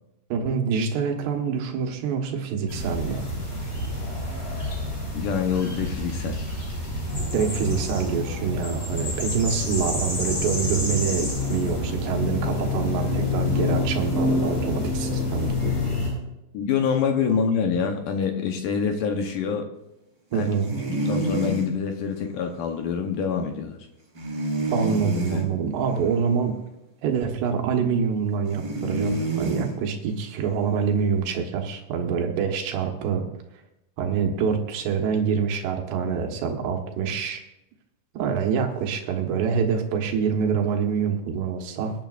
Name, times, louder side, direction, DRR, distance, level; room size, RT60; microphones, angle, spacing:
voice 1, 0.3-3.3 7.3-15.8 20.3-20.7 24.7-26.6 27.0-33.3 34.0-37.4 38.2-41.9, right 6 dB, 75° right, 3 dB, 3.4 m, -26 dB
sound 1, 2.7-16.1, left 2 dB, 20° left, 5.5 m, -27 dB
voice 2, 5.1-6.4 16.5-19.7 20.3-20.5 20.9-23.8 25.3-25.4, left 6 dB, 70° left, 4 dB, 2.1 m, -26 dB
sound 2, 20.3-21.7 24.1-25.5 28.4-29.7, right 1 dB, 25° right, 3.6 m, -28 dB
22.5 x 10.5 x 2.5 m, 0.90 s
omnidirectional pair, 5.0 m